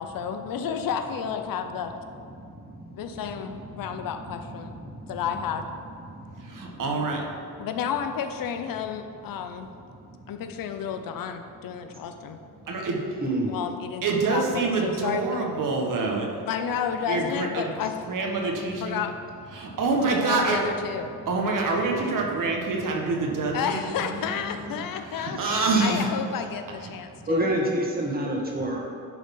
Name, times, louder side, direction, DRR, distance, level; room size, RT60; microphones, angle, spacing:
voice 1, 0.0-1.9 2.9-4.7 5.1-5.7 7.6-9.7 10.3-12.4 13.5-14.0 14.3-15.4 16.5-17.9 18.8-19.3 20.1-21.1 23.5-25.4 25.8-27.5, left 7 dB, 65° left, 7 dB, 0.7 m, -31 dB
voice 2, 2.4-4.0 4.4-5.2 6.1-6.8 10.0-10.1 13.2-13.5 19.6-19.8 25.4-26.0 27.3-28.8, right 1 dB, 25° right, -1 dB, 1.9 m, -30 dB
voice 3, 6.4-7.2 12.7-13.0 14.0-16.3 17.1-17.7 18.1-19.0 19.5-20.6 21.3-24.8 25.1-26.1, right 3 dB, 55° right, 0 dB, 1.5 m, -26 dB
11.0 x 3.9 x 5.5 m, 2.5 s
cardioid pair, 100°, 37 cm